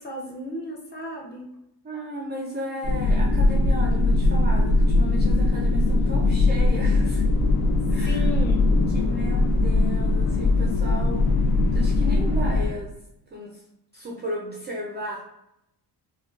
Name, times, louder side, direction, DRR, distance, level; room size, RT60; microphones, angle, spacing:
voice 1, 0.0-1.5 8.0-8.7, left 1 dB, 25° left, -2 dB, 0.6 m, -34 dB
voice 2, 1.8-7.3 7.9-8.3 8.9-11.4 11.7-12.9 13.3-13.6 13.9-15.2, right 1 dB, 25° right, -2 dB, 0.3 m, -35 dB
sound 1, 2.8-12.7, left 2 dB, 70° left, 0.6 m, -20 dB
3.6 x 2.2 x 2.3 m, 0.83 s
cardioid pair, 145°, 41 cm